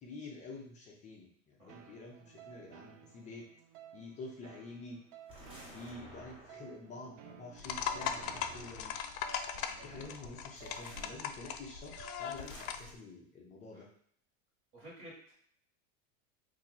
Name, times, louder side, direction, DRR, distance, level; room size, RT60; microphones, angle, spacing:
voice 1, 0.0-3.5 3.9-5.0 5.7-8.9 9.8-13.9, left 3 dB, 20° left, -2 dB, 0.4 m, -48 dB
sound 1, 1.7-12.7, right 9 dB, 60° right, 0.5 m, -56 dB
sound 2, 5.3-6.8 7.7-9.1 10.5-11.1 12.4-12.9, equal, 15° right, 0.8 m, -53 dB
sound 3, 7.6-12.9, left 8 dB, 70° left, 0.5 m, -39 dB
voice 2, 9.5-10.1 13.7-13.9 14.7-15.3, right 1 dB, 30° right, -5 dB, 1.5 m, -54 dB
2.8 x 2.6 x 3.9 m, 0.62 s
supercardioid pair, 145°, 42 cm